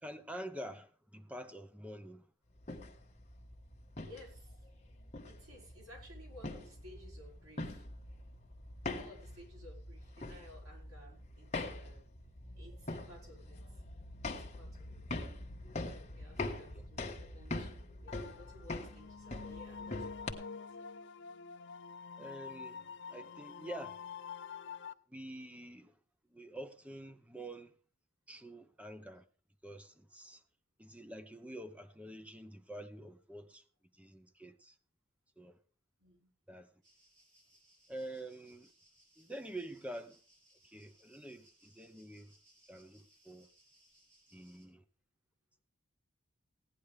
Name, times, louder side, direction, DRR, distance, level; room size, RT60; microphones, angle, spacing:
voice 1, 0.0-2.3 16.7-16.8 22.2-24.0 25.1-26.0 26.3-27.7 28.3-29.2 29.6-30.4 30.8-33.6 33.9-34.8 35.4-35.6 36.5-36.7 37.9-38.7 39.2-40.2 40.6-42.3 42.7-43.5 44.3-44.8, right 1 dB, 5° right, 0.8 m, -47 dB
sound 1, 2.5-20.3, left 2 dB, 30° left, 1.3 m, -44 dB
voice 2, 4.0-4.7 5.3-7.9 8.9-12.1 12.6-13.6 14.4-15.2 16.1-20.8 36.0-36.3, left 1 dB, 90° right, 5.6 m, -57 dB
sound 2, 18.1-24.9, left 5 dB, 55° left, 0.5 m, -47 dB
sound 3, 36.8-44.7, right 1 dB, 60° right, 5.8 m, -67 dB
17.0 x 10.0 x 3.4 m
head